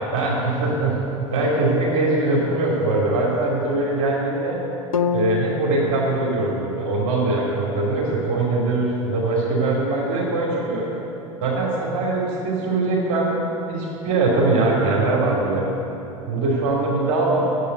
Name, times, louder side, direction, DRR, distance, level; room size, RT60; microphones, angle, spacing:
voice 1, 0.1-4.6 5.1-10.8 11.4-13.4 13.7-15.7 16.3-17.5, right 2 dB, 50° right, -3 dB, 2.6 m, -22 dB
sound 1, 4.9-9.0, left 6 dB, 80° left, 0.6 m, -30 dB
10.0 x 8.0 x 9.3 m, 2.9 s
figure-of-eight pair, 80°, 18 cm